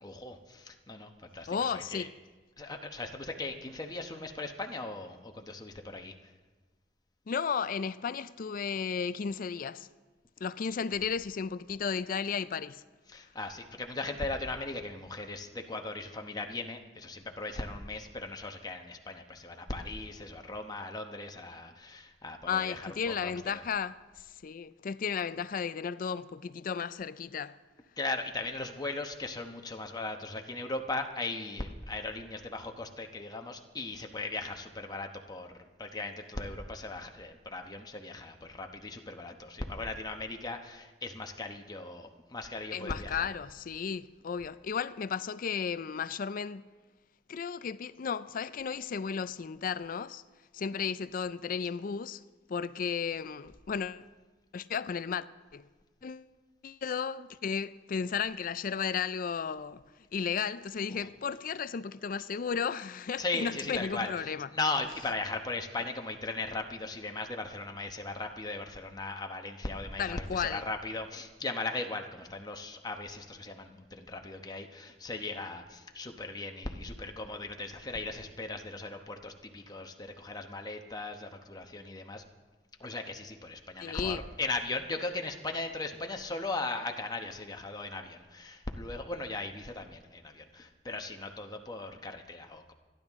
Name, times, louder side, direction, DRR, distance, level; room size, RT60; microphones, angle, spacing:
voice 1, 0.0-2.1 2.6-6.1 13.1-23.6 28.0-43.3 60.9-61.0 63.2-64.1 64.5-82.2 82.8-92.7, left 3 dB, 20° left, 1.0 m, -38 dB
voice 2, 1.5-2.1 7.3-9.9 10.4-12.8 22.5-27.6 42.7-46.6 47.3-50.2 50.5-52.2 52.5-54.0 54.5-55.3 55.5-55.7 56.0-56.3 56.6-59.8 60.1-64.5 70.0-70.6 83.8-84.2, left 6 dB, 50° left, 0.4 m, -34 dB
26.5 x 10.5 x 3.6 m
head